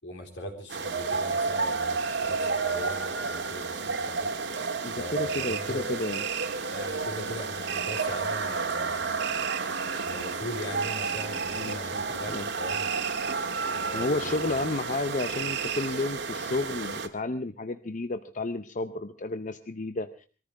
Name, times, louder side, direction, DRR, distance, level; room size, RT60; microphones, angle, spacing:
voice 1, 0.0-4.3 4.9-5.9 6.7-9.4 10.0-12.9 13.6-14.6, left 1 dB, 70° left, 3 dB, 4.1 m, -41 dB
sound 1, 0.7-17.1, right 4 dB, 70° right, 1.8 m, -31 dB
voice 2, 4.8-6.2 11.6-12.5 13.9-20.3, left 2 dB, 45° left, 10 dB, 0.7 m, -32 dB
21.5 x 14.5 x 4.8 m, 0.38 s
head